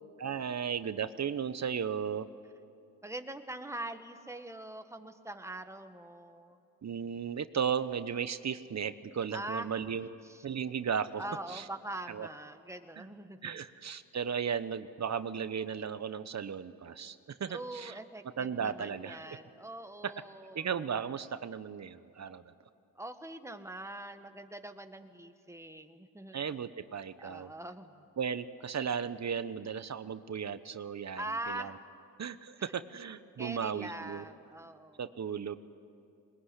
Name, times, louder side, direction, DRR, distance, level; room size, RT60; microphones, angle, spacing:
voice 1, 0.2-2.3 6.8-10.1 10.4-11.2 11.5-11.6 12.1-12.3 13.0-13.1 13.4-18.0 18.4-19.2 20.0-20.1 20.5-22.4 26.3-27.5 28.2-31.7 32.2-34.2 35.0-35.6, right 7 dB, 40° right, 13 dB, 1.1 m, -35 dB
voice 2, 3.0-6.6 9.3-9.7 10.0-10.4 11.2-13.6 17.5-20.7 23.0-26.7 27.2-28.0 31.2-31.8 33.4-35.0, right 1 dB, 5° right, 8 dB, 1.7 m, -43 dB
21.0 x 21.0 x 10.0 m, 2.6 s
supercardioid pair, 60°, 43 cm